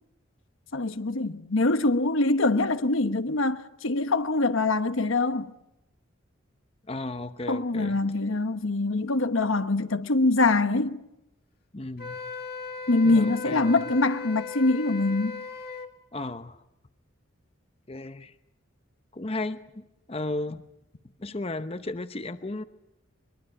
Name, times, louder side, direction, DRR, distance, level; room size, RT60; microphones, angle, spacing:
voice 1, 0.7-5.5 7.5-11.0 12.9-15.4, left 2 dB, 80° left, 1.2 m, -24 dB
voice 2, 6.9-8.0 11.7-12.2 13.0-13.8 16.1-16.6 17.9-18.3 19.1-20.6 21.2-22.6, left 2 dB, 30° left, 0.8 m, -34 dB
Wind instrument woodwind instrument, 12.0-15.9, left 4 dB, 50° left, 2.2 m, -37 dB
23.0 x 22.5 x 8.9 m
head